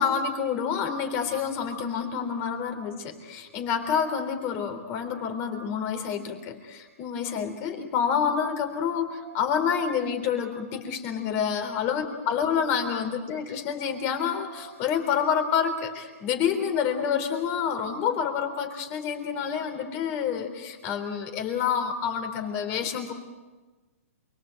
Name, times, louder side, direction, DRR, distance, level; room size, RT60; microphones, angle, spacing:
voice 1, 0.0-23.1, left 7 dB, 30° left, 6 dB, 3.8 m, -28 dB
28.5 x 23.0 x 7.9 m, 1.3 s
hypercardioid pair, 150°, 8 cm